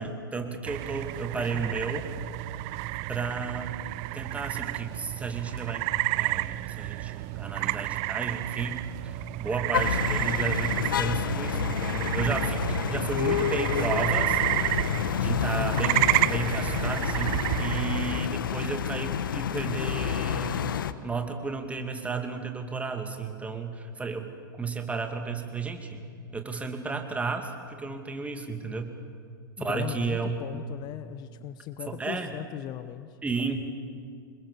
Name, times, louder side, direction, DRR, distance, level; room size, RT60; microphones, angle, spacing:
voice 1, 0.0-2.0 3.1-3.8 4.1-14.4 15.2-20.8 21.0-24.3 24.6-26.1 26.3-28.9 29.6-30.6 31.9-32.3 33.2-33.7, right 4 dB, 10° right, 5 dB, 2.4 m, -33 dB
sound 1, 0.7-18.3, right 20 dB, 45° right, 0.5 m, -30 dB
voice 2, 1.3-2.0 29.6-33.2, left 12 dB, 35° left, 12 dB, 0.9 m, -39 dB
sound 2, 9.7-20.9, left 8 dB, 70° left, 1.0 m, -29 dB
26.5 x 21.5 x 7.0 m, 2.3 s
figure-of-eight pair, 100°, 12 cm